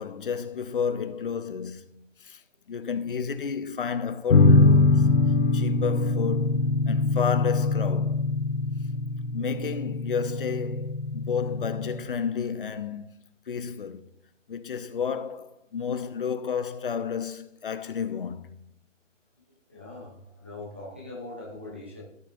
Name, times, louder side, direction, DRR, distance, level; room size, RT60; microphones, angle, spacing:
voice 1, 0.0-2.4 2.7-5.1 5.5-8.2 9.3-13.1 13.5-14.0 14.5-18.5, left 6 dB, 45° left, 0.7 m, -31 dB
sound 1, 4.3-12.0, left 3 dB, 65° left, 1.4 m, -23 dB
voice 2, 19.7-22.0, left 2 dB, 10° right, 0.5 m, -41 dB
13.5 x 6.0 x 2.6 m
figure-of-eight pair, 150°, 38 cm